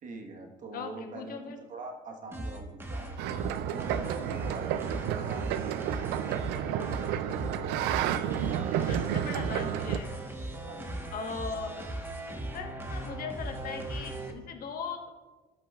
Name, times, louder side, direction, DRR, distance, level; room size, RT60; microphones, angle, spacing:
voice 1, 0.0-3.2 3.6-6.0 6.6-7.1 8.0-8.9 10.6-11.1, right 3 dB, 50° right, 3 dB, 1.3 m, -44 dB
voice 2, 0.7-1.6 8.9-10.1 11.1-11.9 12.3-15.1, left 5 dB, 60° left, 4 dB, 1.2 m, -39 dB
sound 1, 2.3-14.3, right 1 dB, 15° right, 1.2 m, -38 dB
Laughter, 3.0-5.4, right 6 dB, 70° right, 0.8 m, -50 dB
sound 2, 3.2-10.0, right 11 dB, 90° right, 0.4 m, -31 dB
12.5 x 6.0 x 2.4 m, 1.2 s
cardioid pair, 110°, 17 cm